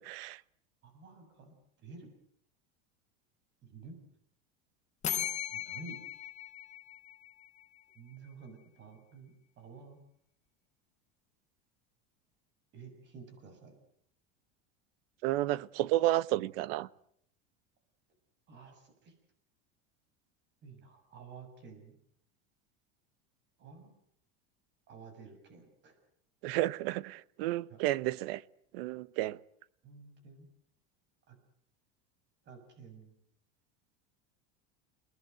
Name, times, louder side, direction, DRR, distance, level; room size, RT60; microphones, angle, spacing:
voice 1, 0.1-0.4 15.2-16.9 26.4-28.4 28.7-29.4, right 16 dB, 70° right, 1.0 m, -31 dB
voice 2, 0.8-2.1 3.6-4.0 5.5-6.0 7.9-10.0 12.7-13.7 18.5-19.1 20.6-21.9 23.6-24.0 24.9-26.0 27.7-27.8 29.8-30.5 31.3-31.4 32.4-33.1, right 4 dB, 35° right, 7.2 m, -51 dB
sound 1, 5.0-7.8, left 10 dB, 25° left, 1.1 m, -38 dB
29.5 x 20.0 x 8.0 m
supercardioid pair, 155°, 30 cm